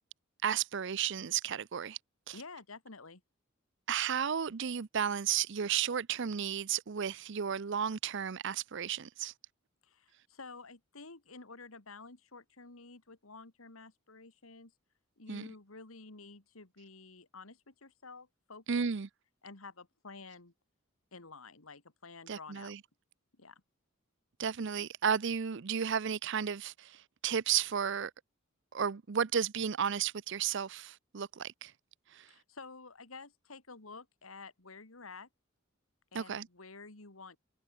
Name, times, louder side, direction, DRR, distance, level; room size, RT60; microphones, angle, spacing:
voice 1, 0.4-2.0 2.3-2.4 3.9-9.3 15.3-15.5 18.7-19.1 22.3-22.8 24.4-28.1 28.7-31.7 32.1-32.3 36.1-36.5, right 8 dB, 60° right, 0.6 m, -33 dB
voice 2, 2.3-3.2 9.8-14.7 15.2-18.9 19.4-20.5 21.1-22.7 23.4-23.6 32.3-35.3 36.1-37.4, left 4 dB, 90° left, 2.3 m, -51 dB
head